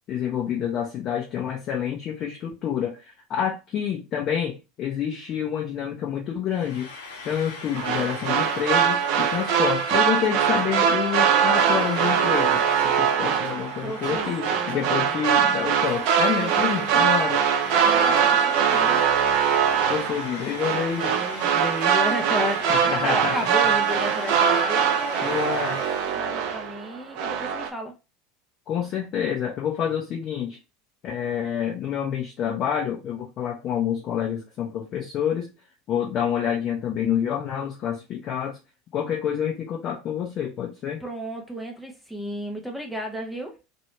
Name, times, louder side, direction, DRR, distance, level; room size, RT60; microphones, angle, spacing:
voice 1, 0.1-6.9 7.2-17.4 19.9-21.1 22.8-23.5 25.2-25.8 28.7-30.6 31.0-35.5 35.9-38.6 38.9-41.0, left 8 dB, 40° left, 0.8 m, -28 dB
Frying (food), 6.5-26.2, left 3 dB, 70° left, 1.0 m, -41 dB
sound 1, 7.7-26.9 27.2-27.7, right 7 dB, 55° right, 0.5 m, -22 dB
voice 2, 13.8-14.3 14.5-15.2 16.3-16.9 17.6-19.0 20.7-28.0 41.0-43.6, equal, 5° right, 0.8 m, -33 dB
3.0 x 2.7 x 3.1 m
figure-of-eight pair, 80°, 0 cm